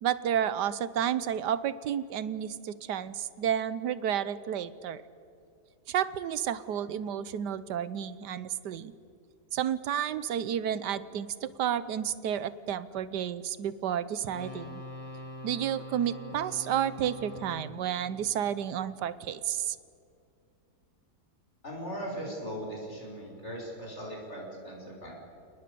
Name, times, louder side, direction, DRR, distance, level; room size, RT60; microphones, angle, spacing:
voice 1, 0.0-5.0 5.9-8.9 9.5-14.8 15.4-19.8, right 9 dB, 90° right, 16 dB, 1.5 m, -31 dB
sound 1, 14.2-19.3 22.0-22.2, equal, 20° left, 2.3 m, -44 dB
voice 2, 21.6-25.1, equal, 40° left, -1 dB, 6.5 m, -39 dB
30.0 x 19.5 x 6.9 m, 2.4 s
omnidirectional pair, 1.8 m